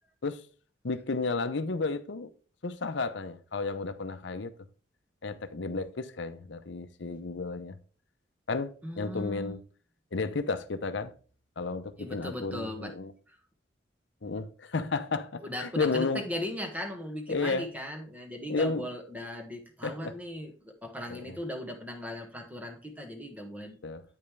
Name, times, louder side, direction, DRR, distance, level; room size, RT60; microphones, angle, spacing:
voice 1, 0.8-2.3 2.6-4.5 5.2-7.8 8.5-9.6 10.1-11.1 11.6-13.1 14.2-16.2 17.3-17.7 18.5-18.8 19.8-20.1 21.1-21.4 23.8-24.0, left 3 dB, 70° left, 0.7 m, -32 dB
voice 2, 8.8-9.6 12.0-12.9 13.3-13.4 15.4-23.8, left 1 dB, 10° right, 1.3 m, -38 dB
9.1 x 5.4 x 3.3 m
head